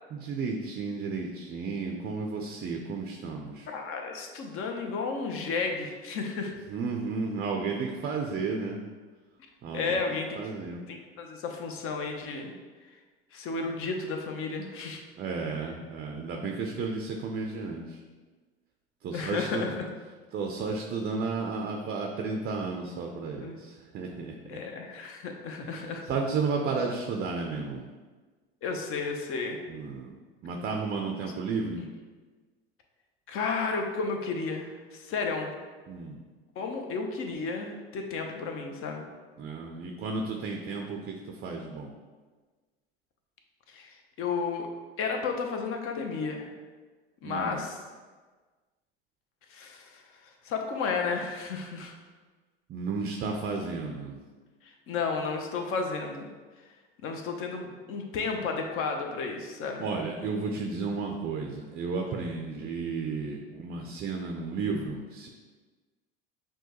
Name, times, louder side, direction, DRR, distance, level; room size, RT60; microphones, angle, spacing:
voice 1, 0.1-3.7 6.7-8.8 9.6-10.0 10.4-10.8 15.2-18.0 19.0-19.7 20.3-24.6 25.6-27.8 29.7-30.1 30.4-31.8 35.9-36.2 39.4-41.9 47.2-47.6 52.7-54.2 59.8-65.3, right 4 dB, 30° right, 2 dB, 0.5 m, -33 dB
voice 2, 3.7-6.5 9.7-10.4 10.9-12.5 13.3-15.0 19.1-19.7 23.4-23.5 24.5-26.0 28.6-29.6 33.3-35.5 36.6-39.0 43.7-44.7 45.0-46.5 47.2-47.8 49.5-51.9 54.6-56.3 57.0-59.9, left 4 dB, 45° left, 3 dB, 0.7 m, -33 dB
6.1 x 2.2 x 2.9 m, 1.4 s
hypercardioid pair, 85°, 31 cm